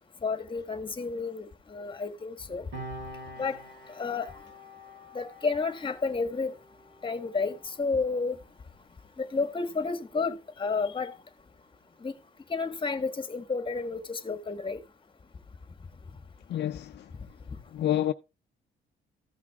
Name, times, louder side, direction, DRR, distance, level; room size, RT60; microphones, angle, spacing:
voice 1, 0.2-1.4 1.7-2.6 3.4-3.6 4.0-4.3 5.1-6.5 7.0-8.3 9.2-11.1 12.0-12.1 12.5-14.8, left 4 dB, 25° left, 1.4 m, -31 dB
Piano, 2.7-9.7 10.0-10.2, equal, 80° right, 5.1 m, -47 dB
voice 2, 16.5-17.1 17.7-18.1, left 12 dB, 60° left, 0.4 m, -28 dB
14.0 x 5.9 x 3.5 m
cardioid pair, 90°, 20 cm